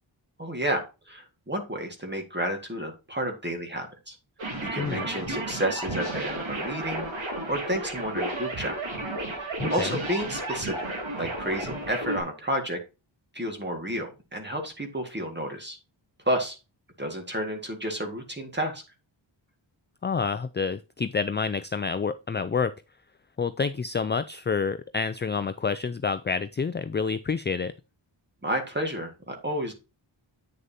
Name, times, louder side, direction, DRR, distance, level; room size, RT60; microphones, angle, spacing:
voice 1, 0.4-4.2 4.6-8.7 9.3-10.9 11.1-12.8 13.3-15.8 16.3-16.6 17.0-18.8 28.4-29.7, equal, 25° right, 3 dB, 1.9 m, -31 dB
sound 1, 4.4-12.2, right 2 dB, 75° right, 3.5 m, -32 dB
voice 2, 4.8-5.1 9.6-10.0 20.0-22.7 23.4-27.7, left 5 dB, 25° left, 12 dB, 0.3 m, -28 dB
9.0 x 6.6 x 2.8 m, 0.28 s
wide cardioid pair, 120°, 47 cm